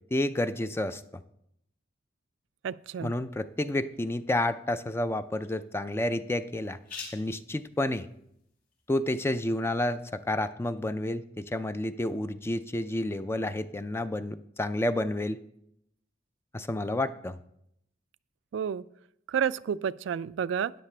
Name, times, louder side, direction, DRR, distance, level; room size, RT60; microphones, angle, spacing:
voice 1, 0.1-1.2 3.0-6.8 7.1-8.1 8.9-15.4 16.5-17.4, left 1 dB, 15° left, 12 dB, 0.3 m, -30 dB
voice 2, 2.6-3.2 18.5-18.8 19.3-20.7, right 8 dB, 75° right, 16 dB, 0.3 m, -30 dB
sound 1, 2.8-10.4, left 4 dB, 55° left, 3.9 m, -52 dB
13.0 x 10.0 x 3.3 m, 0.77 s
head